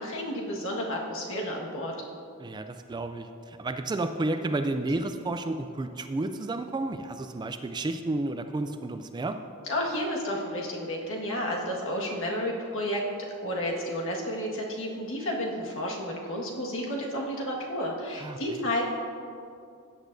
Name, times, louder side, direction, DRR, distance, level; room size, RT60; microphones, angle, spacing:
voice 1, 0.0-1.9 9.7-13.0 13.4-18.8, equal, 60° left, -2 dB, 1.7 m, -31 dB
voice 2, 2.4-9.4 18.2-18.4, right 2 dB, 20° right, 8 dB, 0.3 m, -31 dB
16.0 x 8.3 x 2.7 m, 2.5 s
head